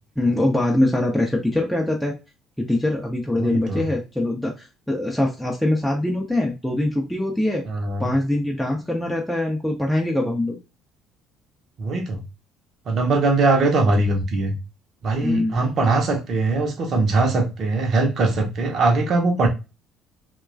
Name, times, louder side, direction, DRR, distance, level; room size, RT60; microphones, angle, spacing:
voice 1, 0.2-2.1 2.6-7.6 8.0-10.6 15.2-15.6, left 1 dB, ahead, 0.6 m, -23 dB
voice 2, 3.4-3.9 7.7-8.1 11.8-12.2 12.9-14.6 15.0-19.5, right 3 dB, 45° right, 0.7 m, -21 dB
3.0 x 2.2 x 2.4 m
figure-of-eight pair, 50°, 0 cm